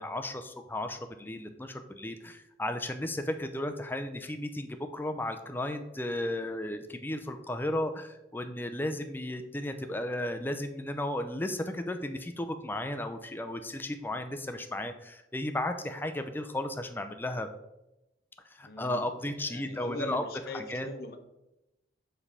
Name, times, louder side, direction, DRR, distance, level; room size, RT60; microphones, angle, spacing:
voice 1, 0.0-17.5 18.5-20.2 20.5-20.9, left 1 dB, 10° left, 7 dB, 0.4 m, -34 dB
voice 2, 18.6-21.2, left 1 dB, 55° left, 7 dB, 0.8 m, -41 dB
7.3 x 3.4 x 5.5 m, 0.92 s
head